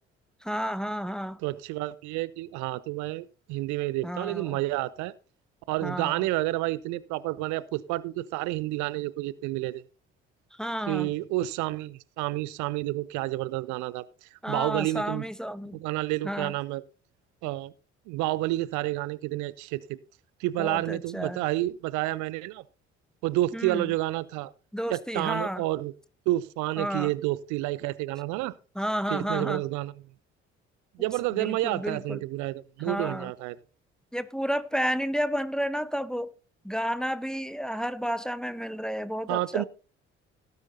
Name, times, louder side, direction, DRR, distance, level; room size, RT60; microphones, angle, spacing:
voice 1, 0.4-1.4 4.0-4.6 5.8-6.3 10.6-11.1 14.4-15.8 16.2-16.5 20.6-21.4 23.5-23.9 24.7-25.6 26.8-27.1 28.7-29.6 31.3-32.2 32.8-33.3 34.1-36.4 36.6-39.6, equal, ahead, 0.8 m, -31 dB
voice 2, 1.4-5.1 5.7-9.8 10.9-15.2 15.7-16.8 17.4-17.7 18.1-20.0 20.4-22.6 23.2-24.5 24.9-25.9 26.3-28.5 29.1-29.9 31.0-33.6 39.3-39.6, right 17 dB, 60° right, 0.6 m, -30 dB
17.0 x 9.5 x 2.6 m
figure-of-eight pair, 45°, 34 cm